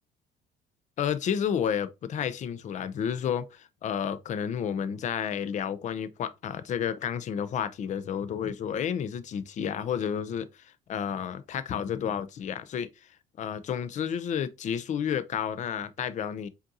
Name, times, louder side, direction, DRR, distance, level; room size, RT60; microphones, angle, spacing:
voice 1, 1.0-12.9 13.4-16.5, left 8 dB, 45° left, 0.5 m, -31 dB
5.1 x 2.6 x 2.7 m
cardioid pair, 110°, 17 cm